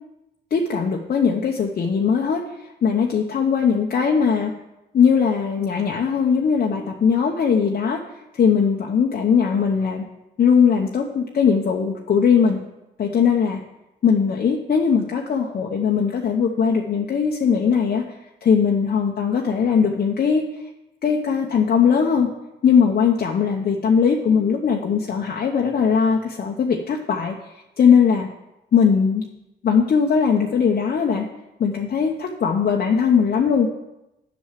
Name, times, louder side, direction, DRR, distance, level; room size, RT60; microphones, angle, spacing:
voice 1, 0.5-4.5 4.9-8.0 8.3-10.1 10.4-12.6 13.0-13.6 14.0-18.0 18.4-20.4 21.0-22.3 22.6-27.3 27.8-28.3 28.7-29.2 29.6-31.3 31.6-33.7, left 6 dB, 50° left, 0 dB, 0.9 m, -19 dB
7.4 x 6.3 x 7.4 m, 0.93 s
cardioid pair, 90°, 20 cm